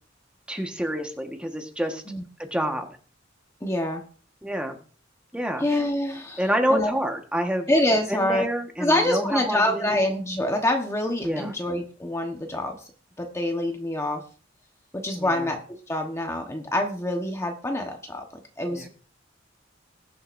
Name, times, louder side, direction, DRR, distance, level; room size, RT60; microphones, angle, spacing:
voice 1, 0.5-2.0 2.4-2.9 4.4-4.8 5.3-5.6 6.4-7.7 8.1-10.0 11.2-11.5 15.2-15.5 18.7-18.9, equal, 5° right, 3 dB, 1.4 m, -27 dB
voice 2, 3.6-4.0 5.6-6.4 6.7-6.9 7.7-8.5 8.8-12.9 13.2-14.2 14.9-15.6 15.9-18.2 18.6-18.9, left 1 dB, 15° left, 3 dB, 1.2 m, -26 dB
21.0 x 7.7 x 2.6 m, 0.41 s
head